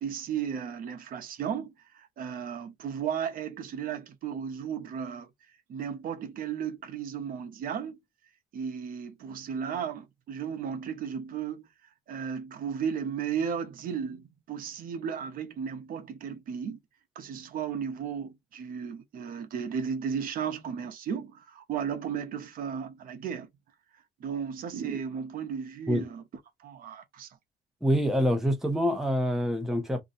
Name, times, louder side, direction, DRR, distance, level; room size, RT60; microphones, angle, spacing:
voice 1, 0.0-5.3 5.7-8.0 8.5-11.6 12.1-16.8 17.1-23.5 24.2-26.2 26.6-27.4, right 7 dB, 55° right, 0.8 m, -34 dB
voice 2, 27.8-30.0, equal, ahead, 0.8 m, -26 dB
2.6 x 2.3 x 4.0 m
cardioid pair, 110°, 17 cm